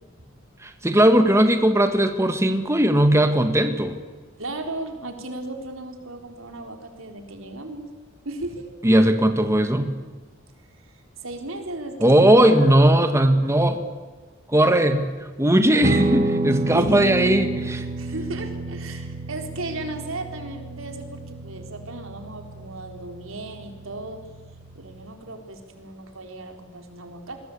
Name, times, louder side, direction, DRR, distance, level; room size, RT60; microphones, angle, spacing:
voice 1, 0.6-4.0 8.8-9.9 12.0-13.8 14.5-15.1 15.4-17.8, right 1 dB, 15° right, 7 dB, 1.7 m, -18 dB
voice 2, 4.4-7.9 8.2-8.6 11.2-12.9 16.7-17.0 17.7-24.2 24.7-27.4, right 2 dB, 85° right, 4 dB, 4.1 m, -35 dB
Guitar, 15.8-25.1, right 2 dB, 45° right, 2.3 m, -30 dB
27.0 x 22.0 x 8.6 m, 1.3 s
head